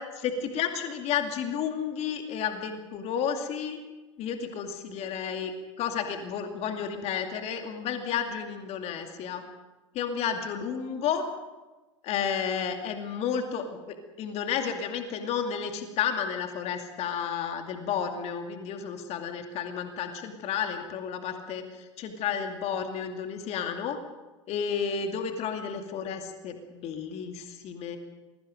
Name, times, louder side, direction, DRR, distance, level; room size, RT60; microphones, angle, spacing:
voice 1, 0.2-3.8 4.2-5.5 5.8-9.4 9.9-11.3 12.0-24.0 24.5-28.0, left 7 dB, 40° left, 5 dB, 2.4 m, -32 dB
27.5 x 21.5 x 5.2 m, 1.2 s
figure-of-eight pair, 85°, 17 cm